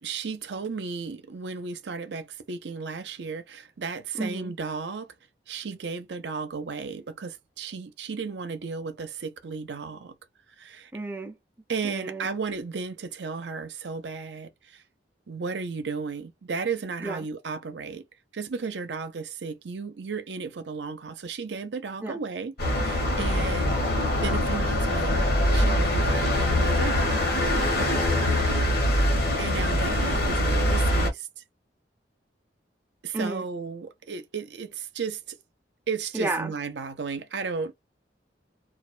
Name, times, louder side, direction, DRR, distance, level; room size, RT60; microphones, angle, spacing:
voice 1, 0.0-5.1 5.5-10.2 10.6-10.9 11.7-14.8 15.3-18.0 18.3-23.8 24.2-27.4 27.8-28.5 29.1-31.3 33.0-35.4 35.9-37.7, right 5 dB, 80° right, 0.6 m, -34 dB
voice 2, 4.2-4.5 10.9-11.3 11.8-12.3 17.0-17.2 22.0-22.2 33.1-33.4 36.1-36.5, right 2 dB, 10° right, 0.5 m, -31 dB
sound 1, 22.6-31.1, left 1 dB, 60° left, 1.0 m, -23 dB
2.4 x 2.2 x 2.4 m
head